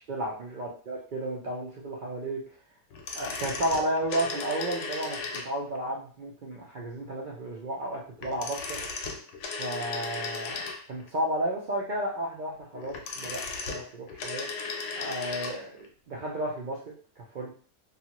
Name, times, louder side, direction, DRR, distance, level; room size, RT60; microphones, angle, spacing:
voice 1, 0.1-2.4 3.1-8.8 9.6-10.6 10.9-13.4 13.7-14.5 15.0-16.8 17.2-17.5, right 1 dB, 80° right, -3 dB, 0.4 m, -32 dB
sound 1, 2.9-5.8 8.2-11.1 12.7-15.6 15.8-15.9, left 4 dB, 75° left, 1.0 m, -36 dB
2.7 x 2.4 x 2.8 m, 0.43 s
omnidirectional pair, 1.5 m